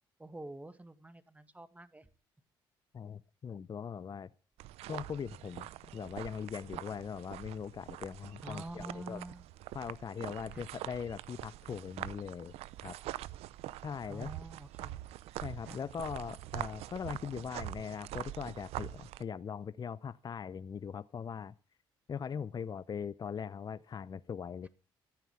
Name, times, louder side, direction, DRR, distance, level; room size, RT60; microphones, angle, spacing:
voice 1, 0.2-2.1 8.4-9.4 10.5-10.6 14.1-15.0 15.6-15.8, right 1 dB, 15° right, 11 dB, 1.7 m, -47 dB
voice 2, 2.9-4.3 4.9-9.2 9.7-12.5 12.8-13.0 13.8-14.3 15.4-21.5 22.1-24.7, left 7 dB, 40° left, 16 dB, 0.6 m, -40 dB
sound 1, 4.6-19.2, right 15 dB, 80° right, 0.6 m, -44 dB
14.5 x 9.1 x 7.1 m, 0.39 s
supercardioid pair, 65°, 10 cm